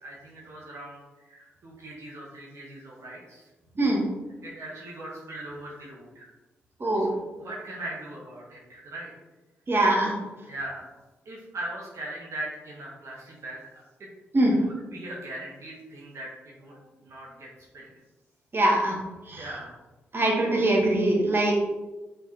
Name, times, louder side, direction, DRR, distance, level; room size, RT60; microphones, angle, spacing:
voice 1, 0.0-3.5 4.4-6.3 6.9-7.1 7.4-9.1 10.5-10.8 11.3-14.1 14.5-17.9 19.3-19.8, right 1 dB, 65° right, -4 dB, 1.8 m, -40 dB
voice 2, 9.7-10.1 14.3-14.6 18.5-19.0 19.3-19.4 20.1-21.5, right 1 dB, 45° right, -1 dB, 2.1 m, -22 dB
5.6 x 5.3 x 4.4 m, 1.1 s
supercardioid pair, 45°, 5 cm